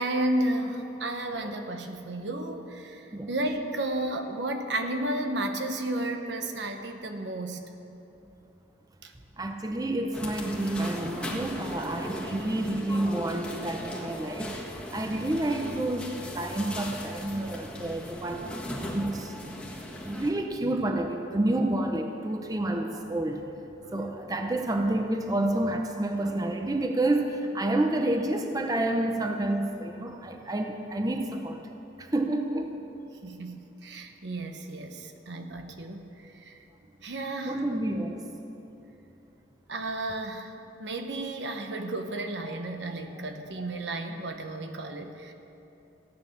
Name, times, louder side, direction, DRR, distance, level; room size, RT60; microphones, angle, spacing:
voice 1, 0.0-7.6 9.0-9.1 23.8-23.9 33.2-36.6 37.0-37.7 39.7-40.5 40.8-45.3, right 1 dB, 75° right, 5 dB, 1.1 m, -32 dB
voice 2, 9.4-14.6 14.9-18.6 18.9-19.3 20.0-23.6 23.9-31.7 32.0-32.8 37.5-38.3 41.5-41.6 42.5-42.6, right 1 dB, 20° right, 4 dB, 0.7 m, -29 dB
sound 1, 10.1-20.3, equal, 5° left, 1.6 m, -38 dB
16.0 x 9.4 x 6.7 m, 2.9 s
head